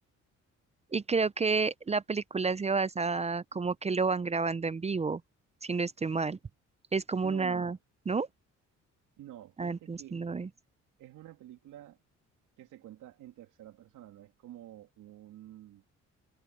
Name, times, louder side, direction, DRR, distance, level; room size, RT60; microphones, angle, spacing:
voice 1, 0.9-5.2 5.6-6.4 6.9-7.8 8.1-8.3 9.6-10.5, right 4 dB, 20° right, 0.5 m, -30 dB
voice 2, 7.2-7.7 9.2-10.2 11.0-12.0 12.6-15.8, right 13 dB, 85° right, 3.0 m, -49 dB
cardioid pair, 90°, 30 cm